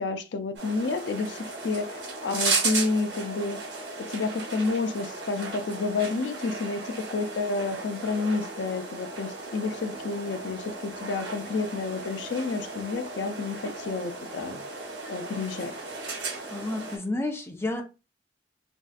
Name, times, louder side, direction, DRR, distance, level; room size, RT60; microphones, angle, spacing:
voice 1, 0.0-3.6 4.0-14.5 15.1-15.7, left 3 dB, 90° left, 0.4 m, -30 dB
sound 1, 0.6-17.0, right 3 dB, 80° right, 1.1 m, -35 dB
voice 2, 16.1-17.8, left 2 dB, 15° left, 0.5 m, -32 dB
3.1 x 2.5 x 2.4 m
head